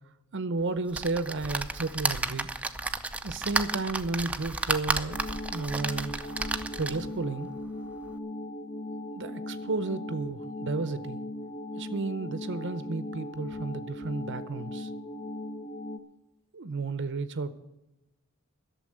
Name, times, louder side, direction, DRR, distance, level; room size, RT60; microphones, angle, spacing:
voice 1, 0.3-2.5 3.2-5.2 5.5-6.1 6.8-7.5 9.2-11.2 11.8-14.9 16.5-17.6, right 3 dB, 55° right, 14 dB, 0.7 m, -32 dB
sound 1, 0.9-7.2 7.7-7.8 8.1-8.2, right 2 dB, 5° right, 0.6 m, -32 dB
sound 2, 5.1-16.0, left 1 dB, 30° left, 0.8 m, -38 dB
12.0 x 7.0 x 9.1 m, 0.98 s
head